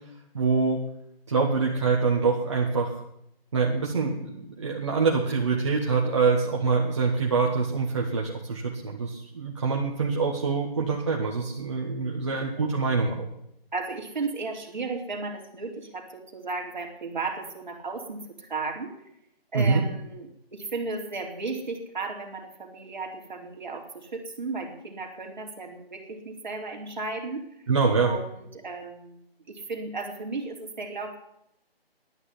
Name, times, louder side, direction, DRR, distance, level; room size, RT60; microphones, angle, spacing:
voice 1, 0.3-0.8 1.3-2.9 3.5-13.3 19.5-19.8 27.7-28.1, right 4 dB, 30° right, -2 dB, 1.5 m, -25 dB
voice 2, 12.0-12.3 13.7-18.9 19.5-27.4 28.0-31.2, right 3 dB, 50° right, 2 dB, 3.1 m, -35 dB
11.5 x 9.8 x 9.9 m, 0.78 s
figure-of-eight pair, 170°, 31 cm